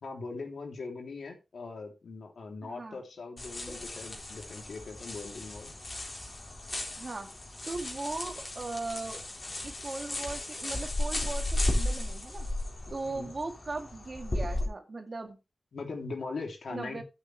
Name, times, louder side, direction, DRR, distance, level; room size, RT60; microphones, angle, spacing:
voice 1, 0.0-5.7 13.0-13.3 15.7-17.0, left 3 dB, 85° left, 3.2 m, -40 dB
voice 2, 2.6-3.0 7.0-7.3 7.7-9.2 9.6-12.5 12.9-15.4 16.7-17.0, right 3 dB, 45° right, 2.1 m, -38 dB
Rustling Bushes, 3.4-14.7, left 1 dB, 35° left, 3.7 m, -35 dB
13.5 x 8.0 x 3.3 m
wide cardioid pair, 85°, 0 cm